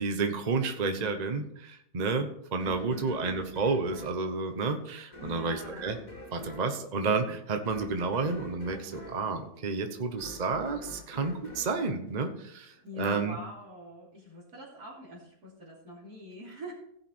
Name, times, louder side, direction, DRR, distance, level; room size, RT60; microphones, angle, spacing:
voice 1, 0.0-6.0 6.3-13.4, right 4 dB, 35° right, 6 dB, 0.9 m, -31 dB
sound 1, 2.6-12.8, left 1 dB, 65° left, 3.4 m, -47 dB
voice 2, 2.6-3.3 5.2-5.9 12.8-16.7, equal, 80° right, -8 dB, 3.2 m, -45 dB
16.5 x 5.6 x 4.4 m, 0.74 s
omnidirectional pair, 1.6 m